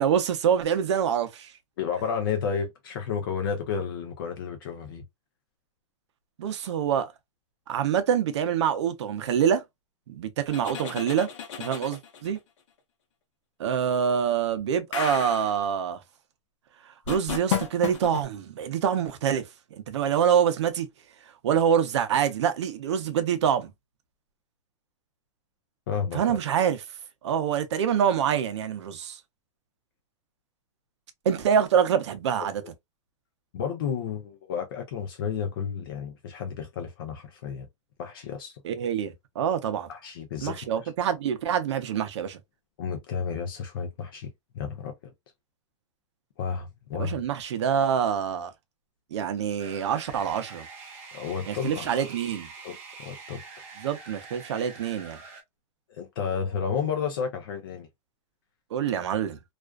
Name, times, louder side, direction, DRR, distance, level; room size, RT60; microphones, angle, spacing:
voice 1, 0.0-1.5 6.4-7.1 7.7-9.6 10.1-11.3 11.6-12.4 13.6-16.0 17.1-19.4 19.7-20.9 21.4-23.7 26.1-26.8 27.2-29.2 31.2-32.6 38.6-39.9 40.4-42.4 47.0-48.5 49.1-50.7 51.5-52.5 53.8-55.2 58.7-59.4, right 8 dB, 60° right, 0.6 m, -25 dB
voice 2, 1.8-5.0 25.9-26.4 32.4-32.5 33.5-37.7 38.0-38.6 39.9-40.9 42.8-45.1 46.4-47.2 51.1-52.1 52.6-53.4 55.9-57.9, left 6 dB, 45° left, 0.5 m, -32 dB
sound 1, 10.5-12.4 14.9-15.6 17.1-18.2, left 8 dB, 70° left, 0.8 m, -32 dB
sound 2, 49.6-55.4, right 4 dB, 15° right, 0.4 m, -45 dB
2.4 x 2.2 x 2.2 m
supercardioid pair, 175°, 16 cm